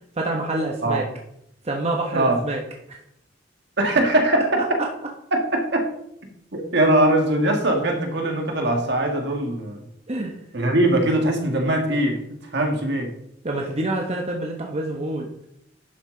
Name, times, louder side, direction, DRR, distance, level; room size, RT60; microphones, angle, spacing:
voice 1, 0.2-1.0 1.6-2.6 2.9-3.0 4.8-4.9 10.1-10.4 13.4-15.3, right 2 dB, 35° right, 1 dB, 0.9 m, -27 dB
voice 2, 3.8-4.6 5.3-5.9 6.5-9.8 10.5-12.2 12.5-13.1, right 1 dB, 65° right, 3 dB, 1.7 m, -21 dB
11.0 x 6.6 x 3.8 m, 0.76 s
head